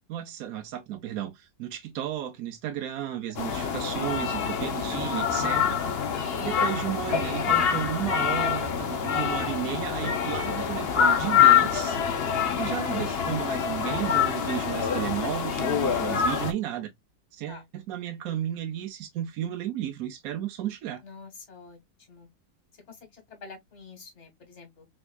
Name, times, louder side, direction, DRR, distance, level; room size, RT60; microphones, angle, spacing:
voice 1, 0.1-5.8 6.4-12.0 12.6-16.9 17.3-21.0, right 11 dB, 65° right, 0.9 m, -33 dB
sound 1, 3.4-16.5, left 8 dB, 65° left, 0.6 m, -25 dB
voice 2, 3.4-3.8 17.5-17.6 21.0-21.8 22.1-22.3 22.7-24.9, left 4 dB, 40° left, 1.5 m, -47 dB
3.5 x 3.4 x 2.2 m
omnidirectional pair, 1.9 m